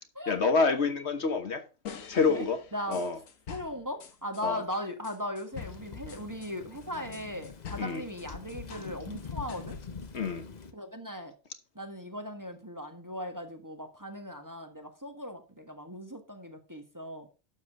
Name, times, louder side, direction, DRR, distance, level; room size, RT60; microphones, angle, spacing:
voice 1, 0.3-1.6 2.1-2.6 2.9-3.2 4.4-4.6 7.8-8.0 10.1-10.4, left 4 dB, 55° left, 1.4 m, -27 dB
sound 1, 1.8-4.5 5.0-8.9 9.2-10.2, left 7 dB, 80° left, 1.6 m, -46 dB
voice 2, 2.3-3.0 3.5-9.8 10.7-11.3 11.7-17.3, left 1 dB, 15° right, 1.6 m, -38 dB
Thunder / Rain, 5.5-10.7, left 5 dB, 35° left, 1.0 m, -44 dB
12.0 x 7.3 x 3.6 m
omnidirectional pair, 1.4 m